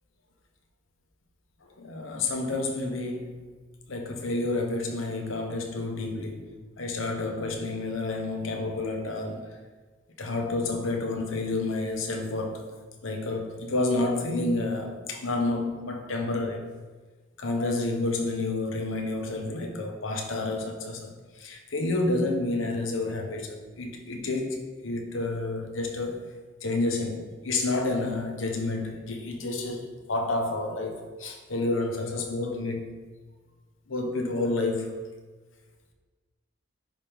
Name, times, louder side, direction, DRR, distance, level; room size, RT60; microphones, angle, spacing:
voice 1, 1.8-3.4 3.9-6.5 6.8-9.6 10.2-12.7 13.0-16.7 17.4-26.3 26.6-32.9 33.9-34.9, left 2 dB, 75° left, 3 dB, 1.0 m, -30 dB
10.5 x 3.6 x 3.5 m, 1.4 s
head